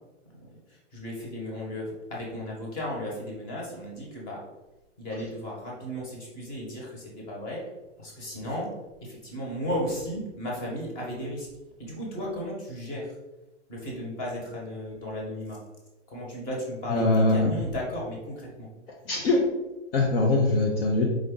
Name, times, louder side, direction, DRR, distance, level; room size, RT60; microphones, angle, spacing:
voice 1, 0.7-4.4 5.0-7.7 8.0-8.7 9.0-11.5 11.8-13.2 13.7-15.6 16.1-18.7, left 1 dB, 25° left, -3 dB, 1.3 m, -35 dB
voice 2, 16.9-17.5 19.1-19.4 19.9-21.0, left 2 dB, 50° left, -1 dB, 0.8 m, -22 dB
4.9 x 2.6 x 3.8 m, 1.0 s
hypercardioid pair, 150°, 37 cm